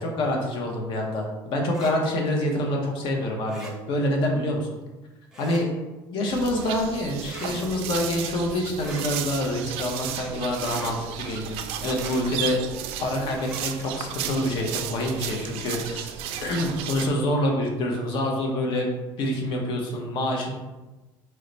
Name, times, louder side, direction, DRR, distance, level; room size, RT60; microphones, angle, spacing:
voice 1, 0.0-4.7 5.4-5.7 6.1-12.6 13.0-16.1 16.4-18.9 19.2-20.5, left 1 dB, 55° left, 1 dB, 0.9 m, -26 dB
sound 1, 1.7-1.9 3.5-3.7 5.3-5.6 7.2-7.5 8.8-9.1 10.6-10.9 11.9-12.2 13.3-13.6, right 1 dB, 5° right, 0.7 m, -41 dB
sound 2, 6.3-17.1, right 9 dB, 75° right, 0.4 m, -34 dB
4.6 x 2.2 x 3.9 m, 1.1 s
cardioid pair, 145°, 10 cm